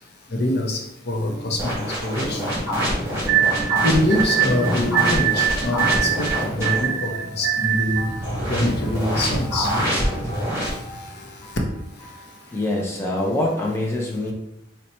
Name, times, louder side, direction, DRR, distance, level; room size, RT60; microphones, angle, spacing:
voice 1, 0.3-0.8 1.1-1.7 2.0-2.4 3.8-7.1 7.4-8.0 8.5-9.7, left 1 dB, 55° left, 2 dB, 0.6 m, -24 dB
sound 1, 1.2-12.7, right 1 dB, 35° left, 1.1 m, -35 dB
sound 2, 1.6-6.8 8.2-10.7, equal, 15° right, 1.4 m, -26 dB
sound 3, 3.3-8.2, right 11 dB, 60° right, 0.4 m, -23 dB
voice 2, 12.5-14.3, left 1 dB, 15° left, -2 dB, 0.4 m, -25 dB
4.0 x 2.2 x 4.2 m, 0.82 s
head